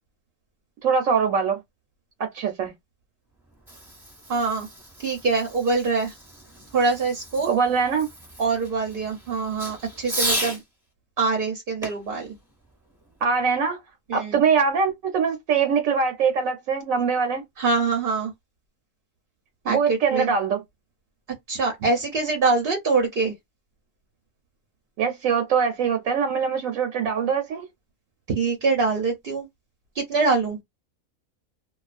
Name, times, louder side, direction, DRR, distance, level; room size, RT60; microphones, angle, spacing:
voice 1, 0.8-1.6 2.2-2.7 7.4-8.1 13.2-13.8 14.1-17.4 19.7-20.6 25.0-27.7, right 6 dB, 75° right, 0.9 m, -23 dB
Fireworks, 3.4-10.6 11.8-13.4, equal, ahead, 1.0 m, -35 dB
voice 2, 4.3-4.7 5.0-6.1 6.7-7.6 8.4-10.6 11.2-12.3 14.1-14.4 17.6-18.3 19.6-20.3 21.5-23.3 28.3-29.5 29.9-30.6, right 4 dB, 50° right, 0.7 m, -24 dB
2.4 x 2.3 x 2.4 m
omnidirectional pair, 1.5 m